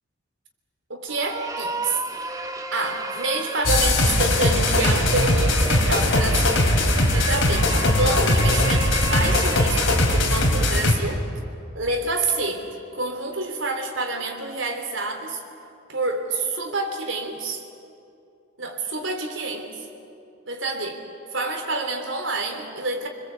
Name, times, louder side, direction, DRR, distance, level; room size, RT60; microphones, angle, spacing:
voice 1, 0.9-2.0 2.7-6.7 7.1-11.3 11.7-12.7 12.9-15.4 15.9-17.6 18.6-19.8 20.4-21.0 21.3-23.1, right 2 dB, 75° right, 4 dB, 3.3 m, -28 dB
sound 1, 1.1-10.9, right 2 dB, 15° right, 1.0 m, -33 dB
sound 2, 3.6-10.9, left 1 dB, 70° left, 3.4 m, -20 dB
30.0 x 21.5 x 8.2 m, 2.6 s
head